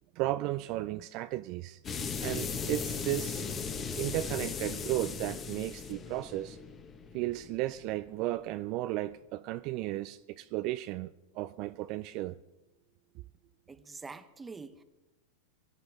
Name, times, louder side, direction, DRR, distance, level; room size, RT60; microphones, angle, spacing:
voice 1, 0.2-1.8 2.2-3.5 4.0-6.6 7.1-12.4, right 16 dB, 50° right, 0.4 m, -34 dB
sound 1, 1.8-8.3, left 5 dB, 30° left, 1.5 m, -37 dB
voice 2, 13.7-14.8, right 4 dB, 15° right, 1.1 m, -45 dB
22.5 x 11.5 x 3.6 m
hypercardioid pair, 95°, 0 cm